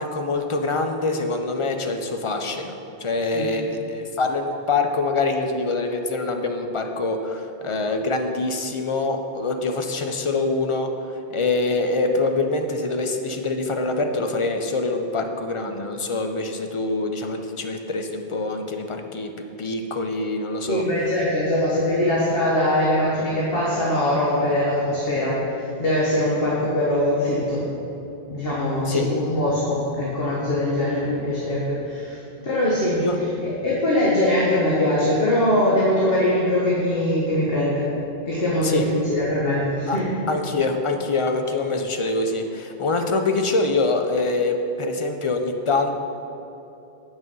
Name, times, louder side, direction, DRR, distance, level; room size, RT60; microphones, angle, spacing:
voice 1, 0.0-2.7 3.0-10.9 11.3-20.8 28.9-29.1 33.0-33.2 38.6-38.8 39.9-40.0 40.3-45.9, left 3 dB, 35° left, 5 dB, 0.6 m, -25 dB
voice 2, 20.7-25.4 25.8-27.6 28.3-32.2 32.4-33.0 33.4-37.9 38.2-40.2, left 1 dB, 60° left, -7 dB, 1.6 m, -22 dB
8.9 x 6.2 x 5.4 m, 2.9 s
omnidirectional pair, 1.1 m